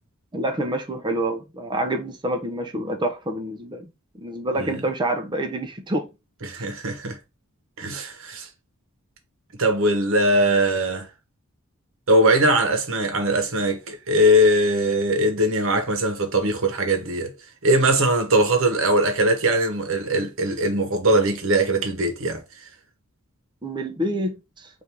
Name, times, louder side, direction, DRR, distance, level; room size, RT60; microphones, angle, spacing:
voice 1, 0.3-3.9 4.2-6.1 6.6-6.7 23.6-24.7, right 1 dB, 20° right, 0.6 m, -27 dB
voice 2, 6.4-7.2 7.8-8.5 9.6-11.1 12.1-17.3 17.6-22.4, right 1 dB, 65° right, 1.0 m, -21 dB
4.4 x 2.6 x 3.3 m
head